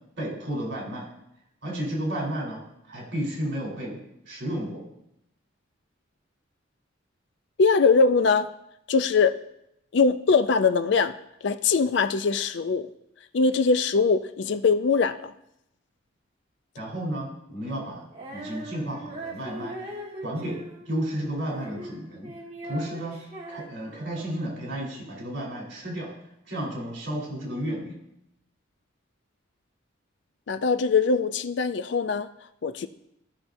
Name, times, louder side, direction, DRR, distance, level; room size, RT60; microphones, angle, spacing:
voice 1, 0.2-1.1 1.6-2.6 2.9-4.0 4.3-4.8 16.8-18.1 18.3-19.8 20.2-20.6 20.9-22.3 22.6-23.1 23.5-26.1 26.5-27.9, right 1 dB, 55° right, -2 dB, 3.6 m, -32 dB
voice 2, 7.6-8.5 8.9-9.3 9.9-11.1 11.4-12.9 13.3-15.3 30.5-32.3 32.6-32.9, left 4 dB, 60° left, 11 dB, 0.4 m, -22 dB
Female singing, 18.1-24.5, right 1 dB, 30° right, 1.5 m, -40 dB
16.0 x 5.8 x 2.6 m, 0.80 s
head